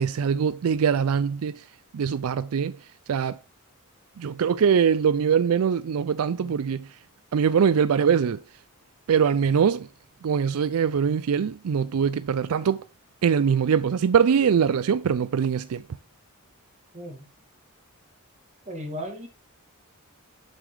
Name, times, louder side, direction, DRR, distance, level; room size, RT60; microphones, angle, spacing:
voice 1, 0.0-1.6 1.9-2.8 3.1-3.4 4.2-6.9 7.3-8.4 9.1-9.9 10.2-12.8 13.2-15.8, right 7 dB, 75° right, 0.4 m, -22 dB
voice 2, 16.9-17.3 18.7-19.3, equal, 30° right, 2.3 m, -36 dB
8.0 x 7.4 x 3.4 m
head